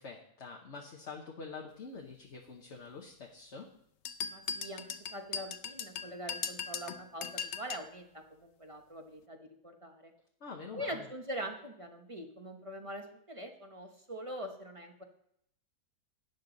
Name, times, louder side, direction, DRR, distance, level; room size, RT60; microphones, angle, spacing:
voice 1, 0.0-3.7 10.4-11.1, left 4 dB, 45° left, 0 dB, 1.3 m, -46 dB
sound 1, 4.0-7.9, left 7 dB, 60° left, 0.7 m, -39 dB
voice 2, 4.3-10.1 10.7-15.0, right 1 dB, 25° right, 4 dB, 0.9 m, -43 dB
12.0 x 9.2 x 3.9 m, 0.73 s
omnidirectional pair, 1.8 m